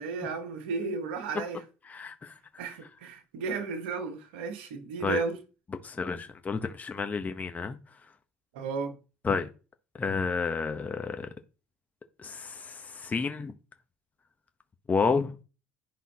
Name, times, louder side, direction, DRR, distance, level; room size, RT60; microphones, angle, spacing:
voice 1, 0.0-1.6 2.6-5.4 8.5-9.0, right 4 dB, 85° right, 1.2 m, -33 dB
voice 2, 1.9-2.3 5.0-5.2 5.8-7.8 9.2-9.5 10.0-11.3 12.2-13.5 14.9-15.3, left 4 dB, 25° left, 0.9 m, -30 dB
10.5 x 5.5 x 2.9 m
hypercardioid pair, 75°, 6 cm